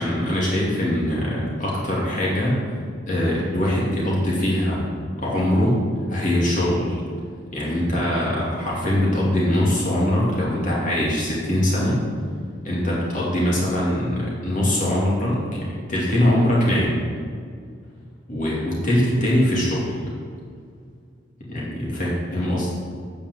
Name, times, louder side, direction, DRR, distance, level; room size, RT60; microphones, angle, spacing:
voice 1, 0.0-2.6 3.1-4.9 5.2-5.8 6.1-7.0 7.5-12.0 12.6-17.0 18.3-20.0 21.5-22.7, left 1 dB, 40° left, -5 dB, 2.8 m, -22 dB
9.3 x 5.2 x 7.6 m, 2.2 s
head